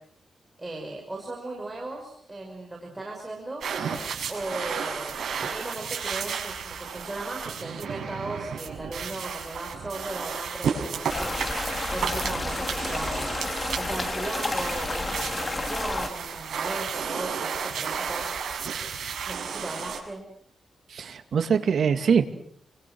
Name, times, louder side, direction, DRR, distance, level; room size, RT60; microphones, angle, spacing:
voice 1, 0.6-3.6 4.3-13.5 13.7-18.3 19.3-20.2, right 2 dB, 15° right, 0 dB, 5.8 m, -37 dB
sound 1, 3.6-20.0, right 6 dB, 80° right, 6.3 m, -33 dB
sound 2, 11.1-16.1, left 2 dB, 25° left, 2.9 m, -31 dB
voice 2, 20.9-22.3, right 6 dB, 65° right, 7 dB, 2.6 m, -23 dB
30.0 x 25.0 x 6.3 m, 0.65 s
wide cardioid pair, 135°, 0 cm